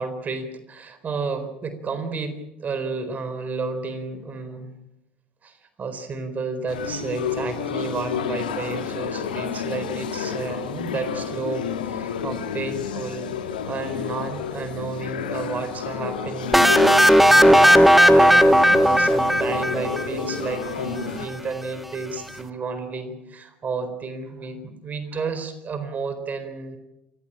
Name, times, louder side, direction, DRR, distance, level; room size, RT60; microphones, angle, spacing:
voice 1, 0.0-4.7 5.4-5.5 5.8-13.3 13.7-26.8, right 4 dB, 35° right, 10 dB, 4.1 m, -32 dB
sound 1, 6.7-21.3, left 7 dB, 90° left, 2.0 m, -30 dB
sound 2, 16.5-20.3, equal, 5° right, 1.5 m, -15 dB
29.0 x 15.5 x 8.8 m, 0.91 s
hypercardioid pair, 70°, 5 cm